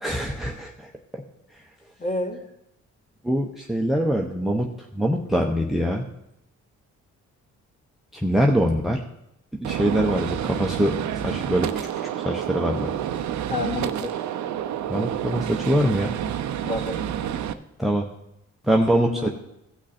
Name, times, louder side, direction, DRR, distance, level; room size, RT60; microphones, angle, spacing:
voice 1, 0.0-0.7 1.1-1.2 3.2-4.7 4.9-6.1 8.2-9.0 9.6-11.7 12.2-12.9 14.9-16.1 17.8-18.1 18.6-19.3, equal, ahead, 1 dB, 0.9 m, -23 dB
voice 2, 2.0-2.4 10.1-10.2 13.5-14.1 16.6-17.0 18.8-19.3, left 2 dB, 25° left, 1 dB, 2.1 m, -29 dB
Gunshot gunfire, 9.6-17.5, right 10 dB, 70° right, 0.7 m, -29 dB
16.0 x 6.1 x 4.2 m, 0.85 s
cardioid pair, 90°, 30 cm